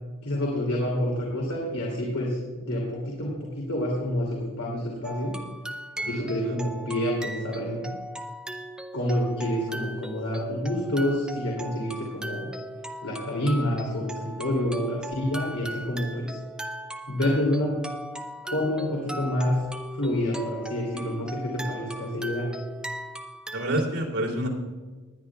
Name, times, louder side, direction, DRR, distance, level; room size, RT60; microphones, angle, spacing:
voice 1, 0.2-5.3 6.1-7.9 8.9-12.5 13.0-16.4 17.1-17.8 18.5-19.5 19.9-22.5, left 1 dB, 85° left, -3 dB, 2.8 m, -28 dB
sound 1, 5.0-23.8, right 1 dB, 5° right, 0.4 m, -38 dB
voice 2, 6.0-6.5 23.5-24.5, right 1 dB, 90° right, -1 dB, 3.1 m, -29 dB
19.5 x 10.5 x 2.4 m, 1.4 s
head